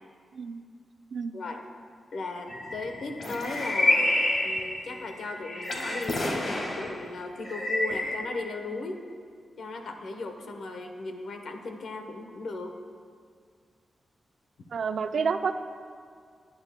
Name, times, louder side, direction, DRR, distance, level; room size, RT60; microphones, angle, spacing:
voice 1, 1.3-1.6 2.1-9.0 9.6-12.7, left 3 dB, 75° left, 4 dB, 1.0 m, -37 dB
sound 1, 2.5-6.9 7.4-8.1, left 1 dB, 50° left, 1.6 m, -28 dB
voice 2, 14.7-15.5, right 5 dB, 75° right, 8 dB, 0.5 m, -29 dB
17.5 x 9.5 x 2.2 m, 2.1 s
cardioid pair, 90°, 0 cm